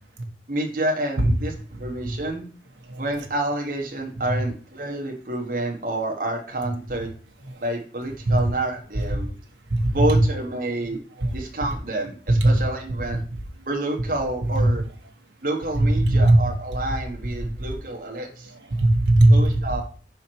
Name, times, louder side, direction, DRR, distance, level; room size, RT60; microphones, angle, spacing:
voice 1, 0.5-1.5 1.8-2.5 3.0-7.1 7.6-9.4 9.9-11.0 11.3-13.2 13.7-14.8 15.4-18.5 19.3-19.8, right 1 dB, 50° right, 1 dB, 1.1 m, -28 dB
voice 2, 9.7-10.2 10.9-11.4 12.3-12.5 14.5-14.7 15.7-16.4 17.4-17.6 18.4-19.6, right 1 dB, 85° right, 2 dB, 1.2 m, -19 dB
5.6 x 4.5 x 4.5 m, 0.42 s
head